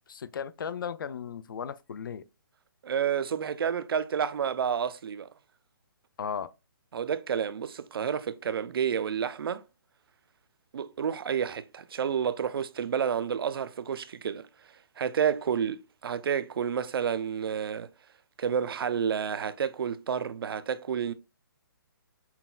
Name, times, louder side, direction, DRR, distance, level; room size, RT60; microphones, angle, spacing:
voice 1, 0.1-2.2 6.2-6.5, left 7 dB, 60° left, 0.4 m, -36 dB
voice 2, 2.8-5.3 6.9-9.6 10.7-14.5 15.0-17.9 18.4-21.1, right 7 dB, 70° right, 0.4 m, -30 dB
5.7 x 2.2 x 2.3 m
hypercardioid pair, 170°, 13 cm